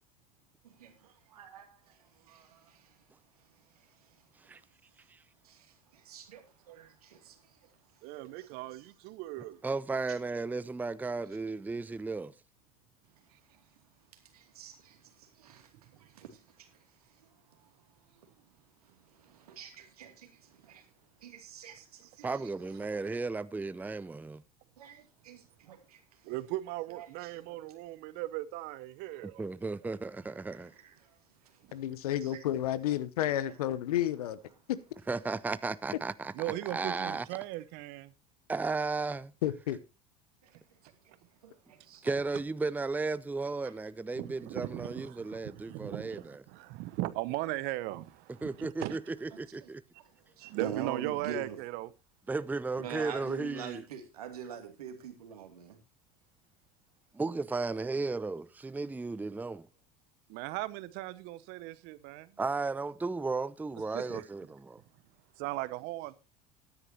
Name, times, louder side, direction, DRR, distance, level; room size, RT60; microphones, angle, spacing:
voice 1, 0.6-3.0 3.4-4.2 5.4-8.5 13.5-13.6 14.1-17.7 18.1-18.5 18.8-20.9 21.2-22.4 24.8-26.3 27.0-27.6 30.5-31.6 32.2-32.4 33.5-33.6 40.4-40.9 41.4-42.1 43.6-43.7 49.6-49.7 50.0-51.6 52.8-55.8, right 8 dB, 80° right, 2.5 m, -46 dB
voice 2, 8.0-9.6 22.2-22.3 26.2-29.4 31.6-31.7 36.3-38.1 40.5-40.6 44.1-49.0 50.4-51.9 60.3-62.4 63.9-64.3 65.4-66.1, right 17 dB, 60° right, 1.0 m, -38 dB
voice 3, 9.6-12.3 22.2-24.4 29.2-30.7 35.1-36.3 36.7-37.3 38.5-39.3 42.0-46.4 48.4-49.8 52.3-53.8 57.1-59.7 62.4-64.8, right 3 dB, 10° right, 0.6 m, -34 dB
voice 4, 31.7-34.4 34.7-34.8 39.4-39.8, left 12 dB, 75° left, 0.9 m, -31 dB
18.0 x 9.9 x 2.9 m
hypercardioid pair, 75°, 19 cm